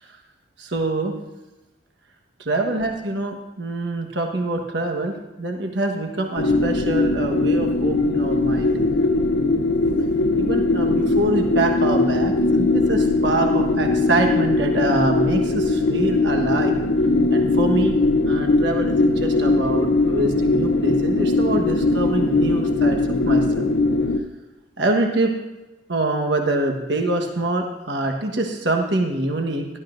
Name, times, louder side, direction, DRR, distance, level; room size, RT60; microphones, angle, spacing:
voice 1, 0.6-1.1 2.4-8.7 10.4-16.8 17.3-18.0 18.2-23.0 23.3-23.7 24.8-25.3 25.9-29.7, right 2 dB, 60° right, 3 dB, 1.3 m, -24 dB
sound 1, 6.4-24.2, left 2 dB, 85° left, 0.8 m, -20 dB
17.5 x 12.0 x 2.6 m, 1.0 s
head